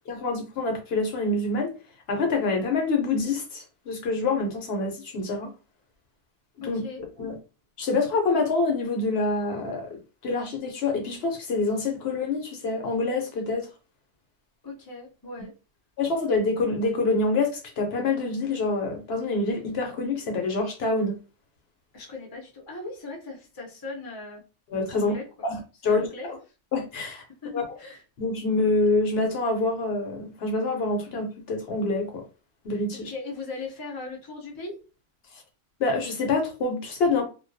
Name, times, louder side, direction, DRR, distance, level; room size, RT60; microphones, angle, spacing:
voice 1, 0.1-1.7 2.1-5.5 6.6-7.4 7.8-13.7 16.0-17.5 17.8-21.2 24.7-25.1 25.4-26.4 26.7-27.2 27.5-27.6 28.2-32.2 32.6-33.1 35.8-37.2, left 3 dB, 65° left, 0.8 m, -26 dB
voice 2, 6.6-7.0 14.6-15.5 21.9-24.4 24.9-25.3 25.8-26.3 27.4-28.0 32.9-34.8, left 3 dB, 30° left, 0.4 m, -38 dB
2.2 x 2.1 x 2.6 m
omnidirectional pair, 1.2 m